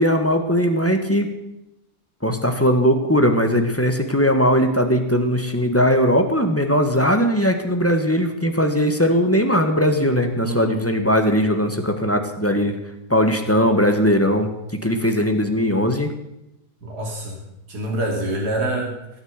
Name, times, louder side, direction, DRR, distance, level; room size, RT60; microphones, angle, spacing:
voice 1, 0.0-1.3 2.2-12.8 13.1-14.5 14.8-16.1, equal, 10° left, 5 dB, 1.4 m, -19 dB
voice 2, 10.4-10.8 16.8-17.4 17.7-19.2, right 2 dB, 70° right, 0 dB, 3.4 m, -26 dB
16.5 x 9.4 x 8.1 m, 0.88 s
omnidirectional pair, 1.8 m